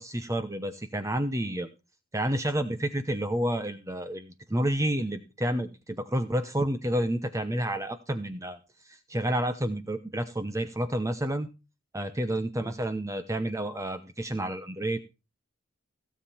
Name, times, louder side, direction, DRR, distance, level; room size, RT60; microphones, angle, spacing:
voice 1, 0.0-1.7 2.1-8.6 8.8-11.5 11.9-15.0, right 1 dB, 15° right, 9 dB, 0.8 m, -30 dB
16.5 x 7.4 x 4.2 m, 0.28 s
head